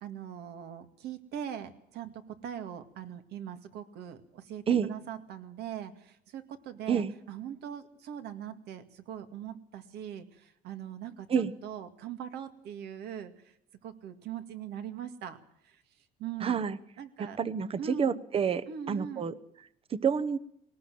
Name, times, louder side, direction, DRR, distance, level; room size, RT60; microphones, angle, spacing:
voice 1, 0.0-13.6 13.8-15.4 15.6-15.8 16.2-16.6 17.0-17.4 17.8-18.2 18.7-19.3, right 9 dB, 75° right, 8 dB, 2.2 m, -41 dB
voice 2, 16.4-16.8 17.4-19.3 19.9-20.4, right 7 dB, 35° right, 16 dB, 1.0 m, -28 dB
20.5 x 18.5 x 7.7 m, 0.73 s
cardioid pair, 110°, 17 cm